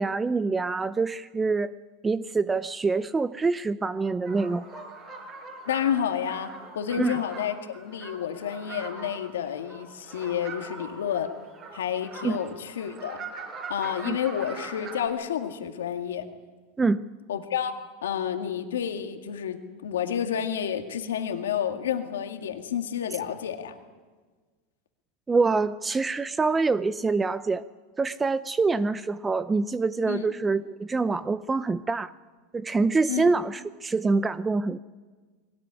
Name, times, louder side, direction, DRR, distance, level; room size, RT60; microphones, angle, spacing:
voice 1, 0.0-1.7 2.0-4.6 7.0-7.2 12.2-12.4 14.1-14.2 16.8-17.0 25.3-27.6 28.0-32.1 32.5-34.8, right 4 dB, 15° right, 15 dB, 0.6 m, -25 dB
sound 1, 4.3-15.1, right 3 dB, 40° right, 5.6 m, -42 dB
voice 2, 5.7-11.3 11.7-13.2 13.7-16.3 17.3-23.8 30.1-30.3 33.1-33.3, left 9 dB, 85° left, 6 dB, 2.0 m, -30 dB
21.5 x 19.0 x 9.9 m, 1.4 s
hypercardioid pair, 105°, 0 cm